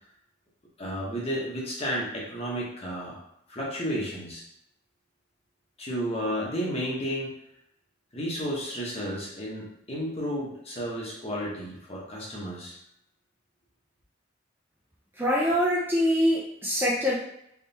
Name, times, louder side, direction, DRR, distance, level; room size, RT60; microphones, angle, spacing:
voice 1, 0.8-3.2 3.5-4.4 5.8-7.3 8.1-12.8, equal, 30° left, -4 dB, 1.0 m, -32 dB
voice 2, 15.2-17.1, equal, 10° right, -4 dB, 0.4 m, -24 dB
3.6 x 3.2 x 2.8 m, 0.75 s
head